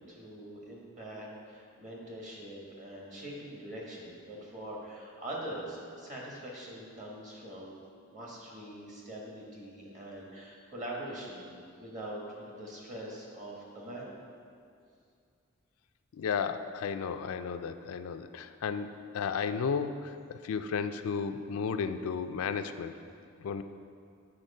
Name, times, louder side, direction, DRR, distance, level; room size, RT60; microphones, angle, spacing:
voice 1, 0.0-7.8 8.1-14.1, right 1 dB, 35° right, -3 dB, 1.3 m, -43 dB
voice 2, 16.1-22.9 23.4-23.6, left 6 dB, 90° left, 9 dB, 0.4 m, -33 dB
7.7 x 4.3 x 5.4 m, 2.4 s
head